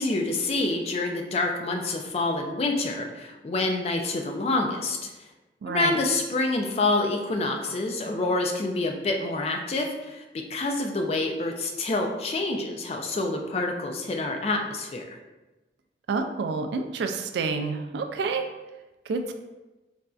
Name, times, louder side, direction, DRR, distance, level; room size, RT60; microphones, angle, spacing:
voice 1, 0.0-5.1 5.7-10.2 10.5-15.0, left 2 dB, 35° left, 3 dB, 0.3 m, -27 dB
voice 2, 5.6-6.0 16.1-18.4 19.1-19.3, right 4 dB, 75° right, 6 dB, 0.3 m, -28 dB
4.1 x 2.5 x 2.3 m, 1.1 s
head